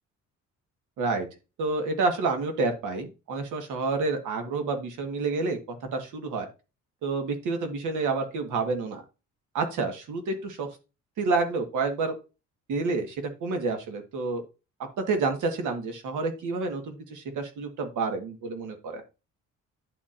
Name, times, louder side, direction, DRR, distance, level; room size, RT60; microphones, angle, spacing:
voice 1, 1.0-1.3 1.6-5.6 5.9-6.5 7.0-9.0 9.5-10.7 11.2-12.2 12.7-14.4 15.0-19.0, right 3 dB, 80° right, 5 dB, 1.5 m, -29 dB
11.0 x 4.3 x 2.5 m, 0.30 s
cardioid pair, 90°, 30 cm